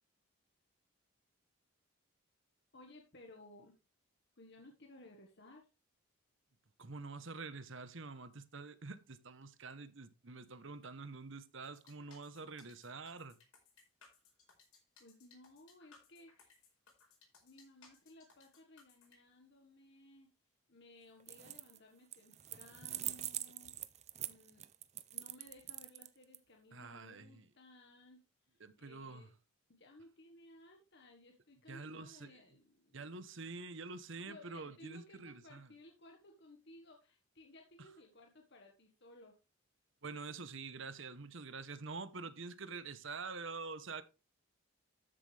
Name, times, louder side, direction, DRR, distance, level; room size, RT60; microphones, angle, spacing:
voice 1, 2.7-3.7 4.3-5.7 15.0-16.7 17.4-20.3 20.7-24.7 25.1-29.3 29.7-33.2 34.2-39.3, left 1 dB, 50° left, 1.5 m, -59 dB
voice 2, 6.8-13.3 26.7-27.5 28.6-29.3 31.7-32.3 32.9-35.7 40.0-44.0, right 4 dB, 60° right, 1.0 m, -47 dB
sound 1, 11.6-19.2, left 5 dB, 85° left, 5.0 m, -64 dB
sound 2, 21.2-21.8 22.1-26.4, right 13 dB, 30° right, 0.5 m, -43 dB
13.0 x 7.5 x 3.4 m
head